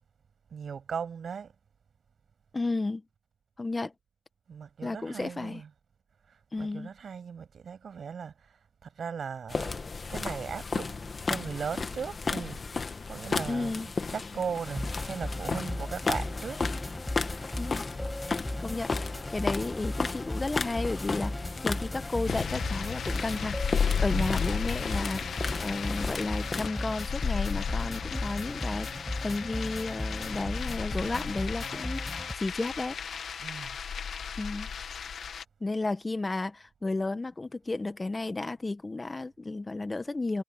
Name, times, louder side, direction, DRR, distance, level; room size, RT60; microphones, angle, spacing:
voice 1, 0.5-1.5 4.5-5.7 6.3-9.8 10.1-12.6 13.1-16.7 24.1-24.4 33.4-33.8, right 6 dB, 80° right, 7.0 m, -38 dB
voice 2, 2.5-3.0 3.6-3.9 4.8-5.6 6.5-6.9 13.5-13.9 17.6-17.9 18.6-18.9 19.3-23.6 24.0-33.0 34.4-34.7 35.6-40.4, left 2 dB, 40° left, 1.5 m, -33 dB
sound 1, 9.5-26.7, left 4 dB, 60° left, 1.8 m, -35 dB
sound 2, 14.6-32.3, left 1 dB, 20° left, 5.8 m, -36 dB
sound 3, 22.2-35.4, left 7 dB, 90° left, 1.5 m, -34 dB
cardioid pair, 45°, 0 cm